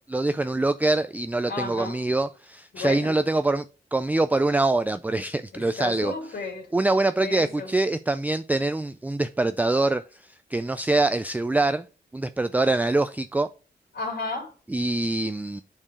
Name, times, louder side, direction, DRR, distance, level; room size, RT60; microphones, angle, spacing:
voice 1, 0.1-3.6 3.9-6.1 6.7-10.0 10.5-11.8 12.1-13.5 14.7-15.6, right 2 dB, 10° right, 0.3 m, -24 dB
voice 2, 1.5-2.0 2.7-3.1 5.5-6.7 7.2-7.7 13.9-14.5, left 3 dB, 80° left, 3.2 m, -33 dB
8.7 x 4.6 x 4.8 m
wide cardioid pair, 100°, 17 cm